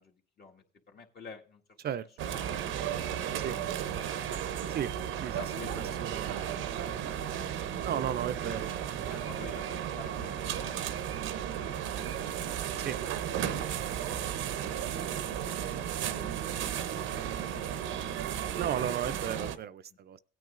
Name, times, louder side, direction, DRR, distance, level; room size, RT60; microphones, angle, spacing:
voice 1, 0.0-1.6 2.0-2.4 2.9-4.2 5.3-6.3 8.5-12.9 15.3-18.2, left 5 dB, 55° left, 1.8 m, -52 dB
sound 1, 2.2-19.6, right 9 dB, 90° right, 0.7 m, -34 dB
voice 2, 5.2-6.3 7.8-9.2 12.8-13.0 15.4-17.1 18.5-20.2, right 9 dB, 55° right, 0.5 m, -36 dB
17.0 x 9.3 x 2.5 m
cardioid pair, 90°, 20 cm